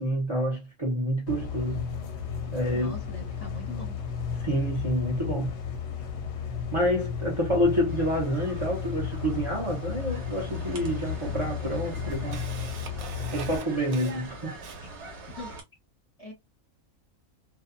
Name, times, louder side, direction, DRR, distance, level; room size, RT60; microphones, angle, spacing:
voice 1, 0.0-1.9 2.5-3.0 4.4-5.5 6.7-12.4 13.3-14.6, equal, 35° right, 0.5 m, -28 dB
sound 1, 1.3-13.6, left 7 dB, 65° left, 0.8 m, -34 dB
voice 2, 2.7-4.0 15.3-15.5 16.2-16.3, left 2 dB, 30° left, 0.8 m, -42 dB
sound 2, 7.9-15.6, right 2 dB, 60° right, 1.1 m, -44 dB
Camera, 10.1-10.2 11.1-11.2 11.6-15.1, right 6 dB, 80° right, 1.0 m, -43 dB
2.5 x 2.2 x 2.4 m
omnidirectional pair, 1.4 m